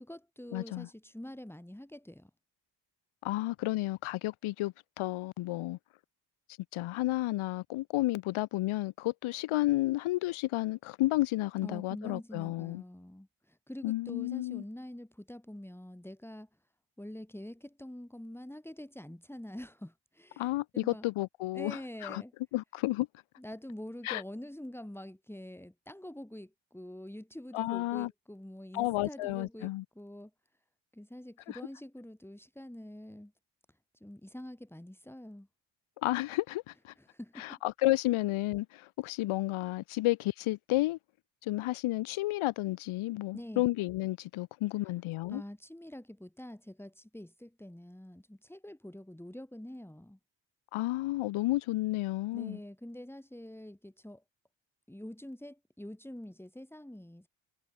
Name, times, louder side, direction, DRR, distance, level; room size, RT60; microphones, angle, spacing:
voice 1, 0.0-2.3 11.6-16.5 17.0-21.1 21.5-22.3 23.4-30.3 30.9-33.3 33.7-35.5 37.0-37.6 43.3-43.7 44.9-45.0 45.3-50.2 52.3-54.2 54.9-57.3, left 1 dB, 5° left, 8.0 m, -46 dB
voice 2, 0.5-0.9 3.2-5.8 6.7-12.8 13.8-14.6 20.4-22.2 22.5-23.1 24.0-24.2 27.5-28.1 28.7-29.8 31.5-31.6 36.0-36.9 37.4-41.0 41.4-45.4 50.7-52.6, left 18 dB, 90° left, 1.9 m, -31 dB
cardioid pair, 70°, 48 cm